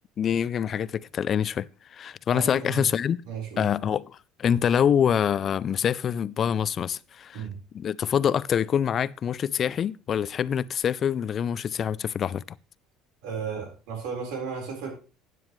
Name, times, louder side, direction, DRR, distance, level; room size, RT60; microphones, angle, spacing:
voice 1, 0.2-3.2 3.6-7.4 7.7-12.6, left 8 dB, 45° left, 0.4 m, -25 dB
voice 2, 2.3-2.9 3.2-3.7 7.3-7.6 13.2-14.9, right 6 dB, 80° right, 4.3 m, -34 dB
13.0 x 9.3 x 3.2 m
supercardioid pair, 105°, 0 cm